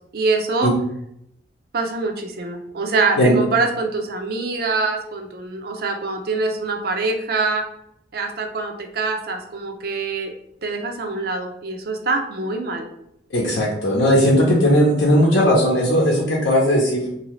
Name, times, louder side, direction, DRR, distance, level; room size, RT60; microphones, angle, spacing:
voice 1, 0.1-0.7 1.7-7.6 8.1-10.3 10.6-12.9, right 3 dB, 55° right, 4 dB, 0.4 m, -24 dB
voice 2, 13.3-17.1, equal, 80° left, -3 dB, 0.7 m, -17 dB
2.8 x 2.7 x 3.0 m, 0.77 s
head